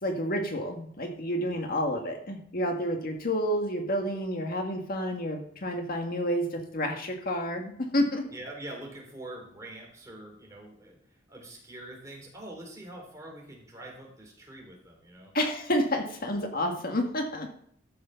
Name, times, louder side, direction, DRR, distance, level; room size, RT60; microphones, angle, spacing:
voice 1, 0.0-8.2 15.3-17.5, equal, 50° left, 3 dB, 1.7 m, -29 dB
voice 2, 8.3-15.3, right 1 dB, 15° right, -1 dB, 3.6 m, -44 dB
14.0 x 6.7 x 5.7 m, 0.65 s
head